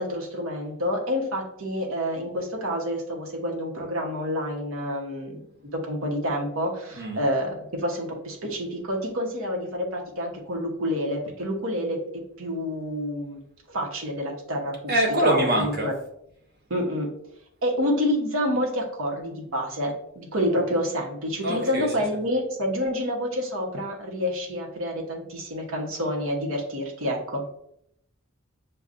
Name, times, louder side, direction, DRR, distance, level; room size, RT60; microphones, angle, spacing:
voice 1, 0.0-5.4 5.7-12.0 12.4-13.4 13.7-14.9 15.2-15.9 16.7-17.1 17.6-27.4, equal, 85° right, 0 dB, 1.0 m, -28 dB
voice 2, 14.9-15.9 21.4-21.9, right 1 dB, 50° right, 0 dB, 0.9 m, -24 dB
6.8 x 2.3 x 2.5 m, 0.75 s
head